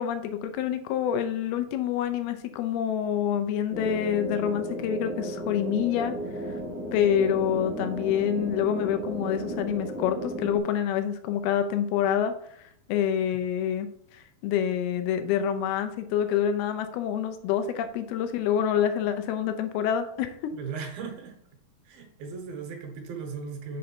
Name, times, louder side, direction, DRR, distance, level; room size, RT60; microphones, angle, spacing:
voice 1, 0.0-6.2 6.9-12.3 12.9-13.9 14.1-20.3, left 9 dB, 85° left, 8 dB, 2.6 m, -27 dB
sound 1, 3.7-10.6, right 1 dB, 10° right, 0.8 m, -34 dB
voice 2, 20.5-21.4 21.9-23.8, right 5 dB, 75° right, 4 dB, 2.6 m, -37 dB
6.6 x 3.8 x 6.0 m, 0.66 s
omnidirectional pair, 4.5 m